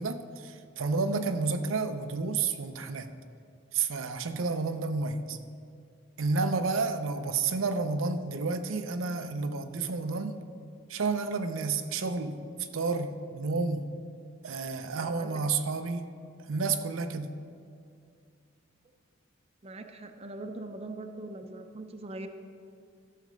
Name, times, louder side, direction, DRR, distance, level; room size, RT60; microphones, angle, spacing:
voice 1, 0.0-3.1 3.7-5.4 6.2-10.4 10.9-12.4 12.7-13.9 14.4-16.0 16.5-17.4, right 4 dB, 85° right, 8 dB, 0.6 m, -30 dB
voice 2, 14.9-15.4 19.6-22.3, right 2 dB, 30° right, 7 dB, 0.6 m, -41 dB
13.5 x 6.6 x 5.1 m, 2.3 s
head